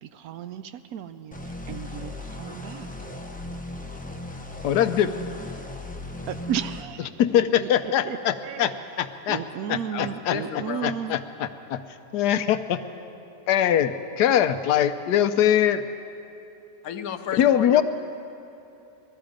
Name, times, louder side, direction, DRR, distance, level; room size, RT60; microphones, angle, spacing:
voice 1, 0.0-2.9 6.3-7.1 7.3-7.7 8.1-8.2 8.4-8.8 9.3-11.2, right 9 dB, 70° right, 11 dB, 1.0 m, -34 dB
sound 1, 1.3-6.8, left 1 dB, 10° left, 0.4 m, -37 dB
voice 2, 4.6-5.1 7.2-8.7 9.0-9.4 9.7-10.4 10.8-11.8 12.1-12.8 13.5-15.8 17.3-17.8, left 10 dB, 85° left, 10 dB, 1.3 m, -22 dB
voice 3, 9.9-10.9 16.8-17.8, left 8 dB, 65° left, 8 dB, 1.2 m, -33 dB
20.0 x 14.0 x 5.1 m, 2.9 s
omnidirectional pair, 1.7 m